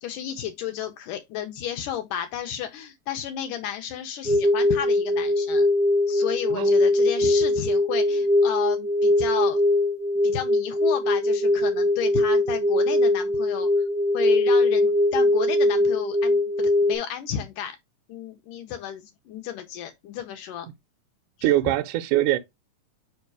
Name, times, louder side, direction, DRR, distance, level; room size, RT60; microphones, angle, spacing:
voice 1, 0.0-5.7 6.1-9.6 10.2-13.7 14.1-17.8 18.1-20.7 21.4-21.5, left 10 dB, 75° left, 2.0 m, -32 dB
sound 1, 4.2-16.9, left 1 dB, 50° left, 1.0 m, -21 dB
voice 2, 6.5-6.8 21.4-22.4, right 14 dB, 80° right, 1.8 m, -23 dB
5.2 x 4.4 x 4.6 m
omnidirectional pair, 4.1 m